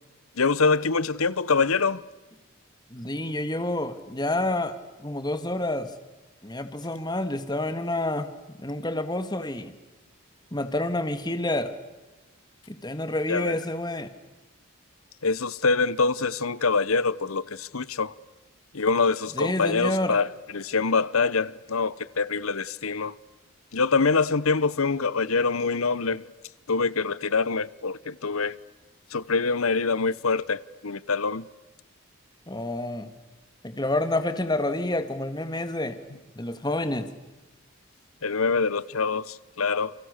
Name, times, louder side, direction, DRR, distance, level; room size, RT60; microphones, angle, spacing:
voice 1, 0.4-2.0 13.3-13.6 15.2-18.1 18.7-20.3 20.5-23.1 23.7-26.2 26.7-28.6 29.1-31.5 38.2-39.9, left 4 dB, 75° left, 1.0 m, -25 dB
voice 2, 2.9-4.8 5.0-5.9 6.4-8.3 8.6-9.7 10.5-11.8 12.7-14.1 19.4-20.2 32.5-33.1 33.6-36.0 36.4-37.1, left 1 dB, 20° left, 1.8 m, -28 dB
30.0 x 29.5 x 6.7 m
head